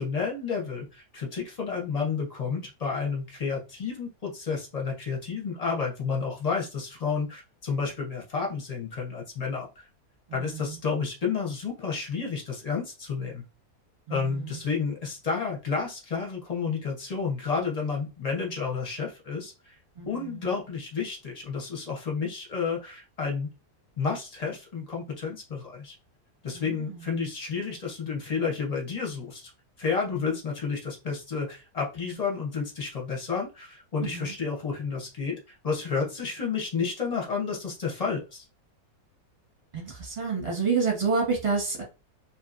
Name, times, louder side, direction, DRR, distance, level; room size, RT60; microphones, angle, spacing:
voice 1, 0.0-9.8 10.3-13.4 14.1-19.8 20.1-23.5 24.0-25.9 26.4-29.5 29.8-38.4, left 5 dB, 35° left, 0.6 m, -31 dB
voice 2, 10.3-10.7 14.1-14.5 20.0-20.4 26.5-26.8 34.1-34.3 39.7-41.8, right 4 dB, 25° right, 0.9 m, -29 dB
2.8 x 2.5 x 2.4 m
omnidirectional pair, 1.6 m